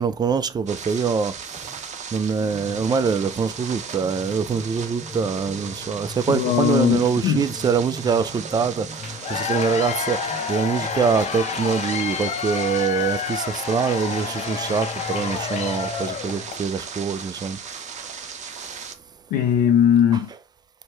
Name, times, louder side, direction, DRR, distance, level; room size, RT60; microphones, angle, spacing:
voice 1, 0.0-1.3 2.1-8.9 9.3-10.2 10.5-17.6, right 6 dB, 25° right, 0.4 m, -24 dB
sound 1, 0.7-18.9, right 6 dB, 45° right, 0.9 m, -37 dB
sound 2, 2.4-16.5, left 2 dB, ahead, 1.3 m, -41 dB
voice 2, 6.3-7.5 19.3-20.3, left 9 dB, 85° left, 0.5 m, -19 dB
Cheering / Applause / Crowd, 9.0-16.7, left 6 dB, 40° left, 0.6 m, -29 dB
4.5 x 2.1 x 4.7 m
cardioid pair, 110°, 17 cm